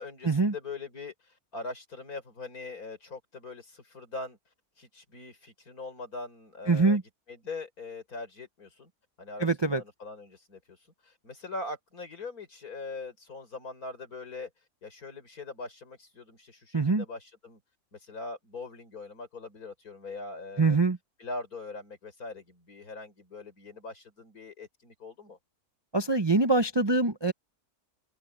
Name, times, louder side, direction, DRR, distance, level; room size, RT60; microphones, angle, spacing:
voice 1, 0.0-4.4 4.8-7.0 7.3-8.9 9.2-10.8 11.0-14.5 14.8-17.6 17.9-20.8 21.2-25.4, left 3 dB, 75° left, 4.9 m, -42 dB
voice 2, 6.7-7.0 9.4-9.8 16.7-17.0 20.6-21.0 25.9-27.3, right 3 dB, 25° right, 0.6 m, -24 dB
open air
omnidirectional pair, 1.6 m